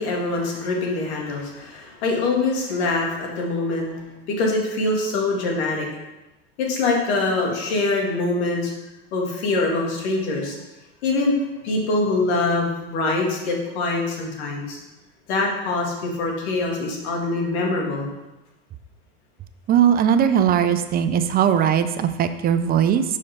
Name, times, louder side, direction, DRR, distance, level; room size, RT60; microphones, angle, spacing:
voice 1, 0.0-4.0 4.3-5.9 6.6-8.7 9.1-10.6 11.0-11.4 11.6-14.8 15.3-18.1, left 3 dB, 80° left, 0 dB, 2.0 m, -24 dB
voice 2, 19.7-23.0, right 9 dB, 30° right, 10 dB, 0.5 m, -19 dB
5.4 x 5.0 x 5.6 m, 1.0 s
supercardioid pair, 120°, 32 cm